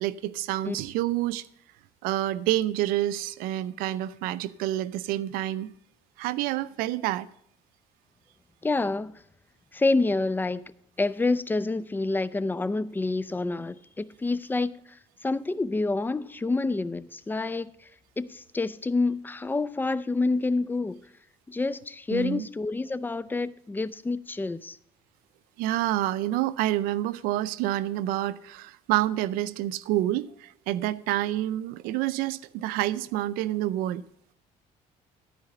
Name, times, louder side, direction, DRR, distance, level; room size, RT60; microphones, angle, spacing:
voice 1, 0.0-1.5 2.0-5.7 6.2-7.3 22.1-22.5 25.6-34.0, right 14 dB, 90° right, 0.5 m, -28 dB
voice 2, 8.6-9.1 9.7-10.7 11.0-14.7 15.2-17.7 18.2-21.0 21.5-24.8, left 3 dB, 15° left, 0.5 m, -28 dB
13.0 x 4.9 x 6.6 m
cardioid pair, 110°, 15 cm